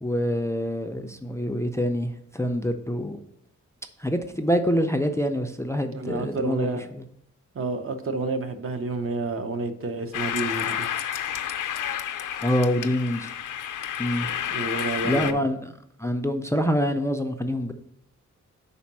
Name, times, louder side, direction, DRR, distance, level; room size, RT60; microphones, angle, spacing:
voice 1, 0.0-3.2 4.0-7.0 12.4-13.3 14.0-14.3 15.0-15.7 16.0-17.7, equal, 10° left, 7 dB, 0.4 m, -26 dB
voice 2, 5.9-6.9 7.5-10.9 14.5-15.4, right 3 dB, 45° right, 7 dB, 0.7 m, -29 dB
sound 1, 10.1-15.3, left 10 dB, 85° left, 0.5 m, -30 dB
5.2 x 4.2 x 5.9 m, 0.73 s
wide cardioid pair, 135°, 30 cm